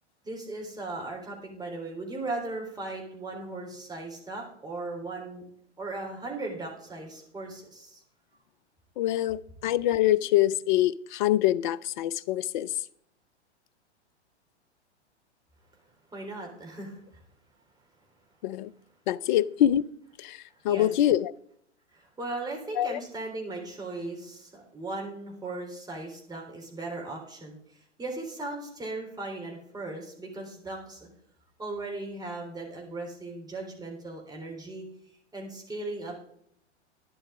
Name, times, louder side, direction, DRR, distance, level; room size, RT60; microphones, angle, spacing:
voice 1, 0.2-5.4 5.8-8.0 16.1-17.0 20.6-20.9 21.9-27.6 28.0-31.1 31.6-34.8 35.3-36.1, right 2 dB, 10° right, 3.7 m, -37 dB
voice 2, 9.0-12.7 18.4-18.7 19.1-19.9 20.2-20.4 20.6-21.3 22.8-23.0, left 13 dB, 45° left, 0.5 m, -25 dB
12.0 x 10.5 x 3.7 m
figure-of-eight pair, 105°, 35 cm